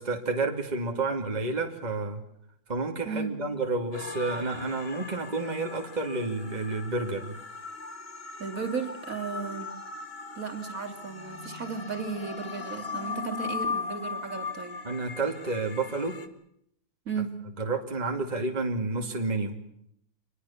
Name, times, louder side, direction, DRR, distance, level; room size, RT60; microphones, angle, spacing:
voice 1, 0.0-2.2 2.7-7.4 14.8-16.2 17.6-19.6, right 3 dB, 25° right, 4 dB, 2.5 m, -30 dB
voice 2, 3.0-3.4 8.4-9.7 10.3-14.8 17.0-17.3, right 5 dB, 55° right, 5 dB, 3.2 m, -35 dB
sound 1, 3.9-16.3, left 4 dB, 40° left, 2.1 m, -38 dB
26.0 x 21.0 x 7.1 m, 0.74 s
omnidirectional pair, 1.7 m